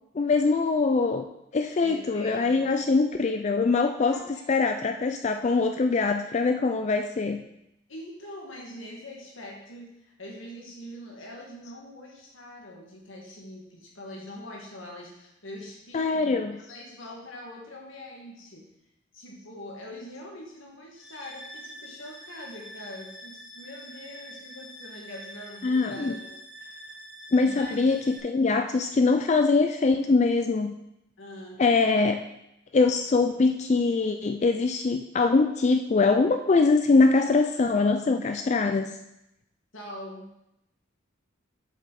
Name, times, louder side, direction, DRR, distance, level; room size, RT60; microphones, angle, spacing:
voice 1, 0.2-1.2 1.5-4.2 4.5-7.4 15.9-16.5 25.6-26.2 27.3-30.7 31.6-32.3 32.7-39.0, left 3 dB, 35° left, 6 dB, 0.3 m, -23 dB
voice 2, 1.8-2.7 4.1-4.5 7.9-16.4 16.7-18.7 19.1-27.0 27.4-28.1 31.2-31.6 39.7-40.3, left 1 dB, 75° left, -2 dB, 2.1 m, -43 dB
sound 1, 21.0-28.2, equal, 5° right, 1.2 m, -45 dB
7.4 x 7.0 x 4.2 m, 0.84 s
head